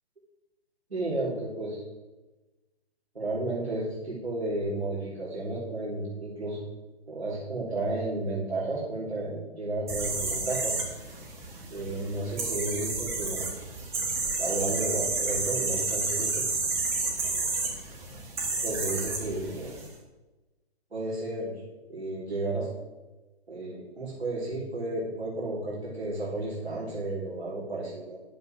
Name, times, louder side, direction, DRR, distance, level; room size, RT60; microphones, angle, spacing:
voice 1, 0.9-1.8 3.1-6.6 7.1-10.8 11.7-13.5 14.0-14.1 14.4-16.4 18.6-19.7 20.9-21.5 21.9-22.7 23.5-28.2, right 2 dB, 70° right, -6 dB, 3.6 m, -32 dB
sound 1, 9.9-19.9, right 3 dB, 10° right, 1.5 m, -31 dB
10.0 x 7.6 x 6.3 m, 1.1 s
figure-of-eight pair, 140°, 32 cm